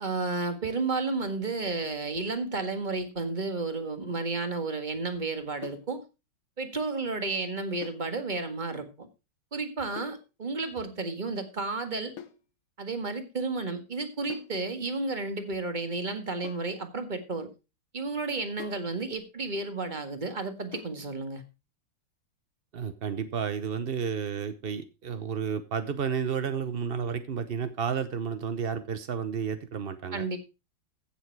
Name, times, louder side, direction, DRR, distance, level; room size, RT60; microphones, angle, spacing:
voice 1, 0.0-6.0 6.6-9.1 9.5-12.2 12.8-17.5 17.9-21.4 30.1-30.4, right 3 dB, 25° right, 1.6 m, -32 dB
sound 1, 5.6-5.9 7.8-8.1 10.0-10.3 12.2-12.5 14.3-14.6 16.4-16.8 18.6-18.9 20.7-21.0, left 9 dB, 80° left, 2.1 m, -44 dB
voice 2, 22.7-30.2, right 7 dB, 75° right, 0.5 m, -31 dB
15.5 x 7.1 x 4.7 m
omnidirectional pair, 2.4 m